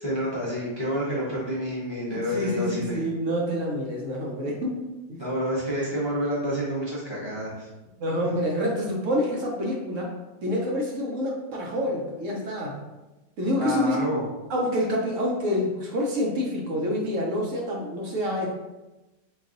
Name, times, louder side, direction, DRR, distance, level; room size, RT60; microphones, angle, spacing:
voice 1, 0.0-2.9 5.2-7.7 13.6-14.2, equal, 25° left, -7 dB, 0.7 m, -29 dB
voice 2, 2.1-4.8 5.1-5.2 8.0-10.1 10.4-12.8 13.4-14.1 14.5-18.5, equal, 60° right, -2 dB, 1.0 m, -27 dB
3.9 x 2.6 x 3.8 m, 1.0 s
omnidirectional pair, 1.6 m